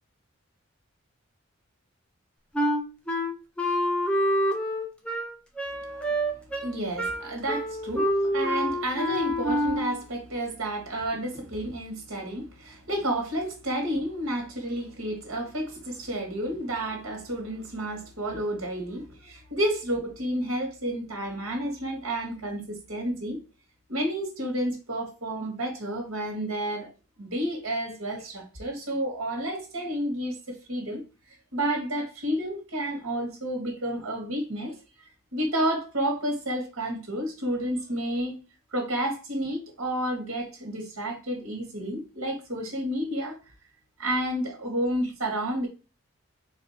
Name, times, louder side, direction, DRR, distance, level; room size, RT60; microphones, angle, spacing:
Wind instrument woodwind instrument, 2.5-10.0, equal, 5° left, 0.6 m, -27 dB
voice 1, 5.9-6.3 6.6-23.4 23.9-26.9 27.2-31.0 31.5-34.7 35.3-38.4 38.7-43.4 44.0-45.7, right 1 dB, 80° right, 1.5 m, -30 dB
3.9 x 2.6 x 4.1 m
head